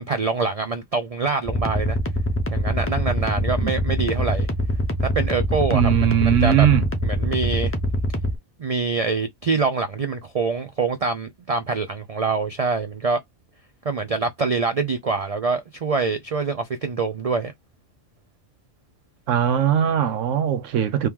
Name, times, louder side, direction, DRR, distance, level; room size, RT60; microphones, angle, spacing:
voice 1, 0.0-2.0 2.5-4.5 5.0-6.7 7.0-7.7 8.6-13.2 13.8-17.5, right 4 dB, 55° right, 0.4 m, -25 dB
sound 1, 1.5-8.3, equal, 15° left, 0.5 m, -23 dB
voice 2, 5.7-6.8 19.3-21.1, right 10 dB, 75° right, 1.0 m, -19 dB
3.2 x 2.9 x 3.5 m
omnidirectional pair, 1.3 m